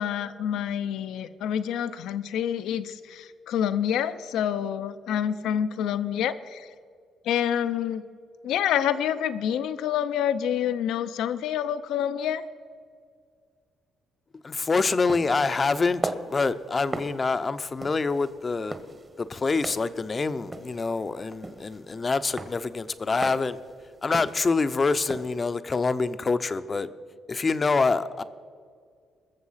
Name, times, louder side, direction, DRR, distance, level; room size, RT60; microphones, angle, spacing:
voice 1, 0.0-6.7 7.2-8.0 8.4-12.4, left 9 dB, 85° left, 12 dB, 0.6 m, -27 dB
voice 2, 14.4-18.8 19.2-23.6 24.0-26.9 27.3-28.2, left 4 dB, 30° left, 12 dB, 0.6 m, -26 dB
sound 1, 15.1-25.4, right 2 dB, 30° right, 1.2 m, -39 dB
21.0 x 7.0 x 5.7 m, 2.1 s
cardioid pair, 90°, 0 cm